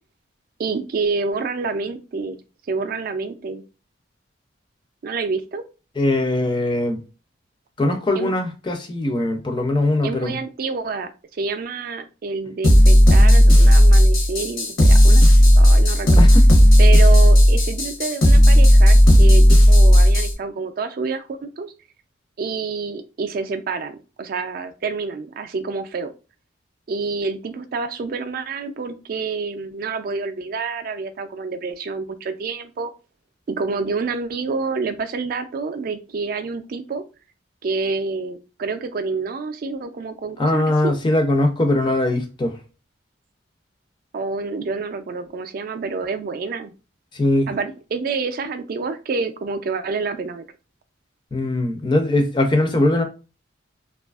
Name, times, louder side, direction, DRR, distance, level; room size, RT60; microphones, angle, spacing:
voice 1, 0.6-2.4 2.7-3.6 5.0-5.6 8.2-8.3 10.0-16.3 16.8-21.7 22.4-26.1 26.9-32.9 33.5-37.0 37.6-40.9 44.1-46.7 47.5-50.4, right 4 dB, 45° right, 0.3 m, -28 dB
voice 2, 6.0-7.0 7.8-10.4 16.2-16.4 40.4-42.6 47.1-47.5 51.3-53.0, left 1 dB, 25° left, 0.4 m, -21 dB
sound 1, 12.6-20.3, equal, 80° left, 0.8 m, -11 dB
2.6 x 2.3 x 2.3 m
head